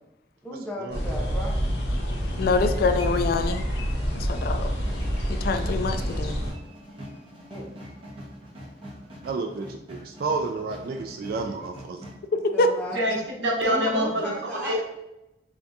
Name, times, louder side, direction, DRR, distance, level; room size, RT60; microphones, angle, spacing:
voice 1, 0.4-1.7 7.5-7.8 12.5-13.0 13.7-14.8, equal, 5° left, -2 dB, 0.6 m, -35 dB
sound 1, 0.9-6.5, equal, 70° left, 1.0 m, -27 dB
voice 2, 2.4-3.6 4.1-4.7 5.4-6.4 12.4-12.7, left 3 dB, 55° left, 8 dB, 0.3 m, -25 dB
sound 2, 4.3-12.2, equal, 30° right, 1.2 m, -44 dB
voice 3, 9.2-12.0, right 4 dB, 55° right, 4 dB, 0.3 m, -31 dB
voice 4, 12.9-14.3 14.6-14.8, equal, 75° right, -1 dB, 0.9 m, -25 dB
3.5 x 3.4 x 2.7 m, 0.92 s
head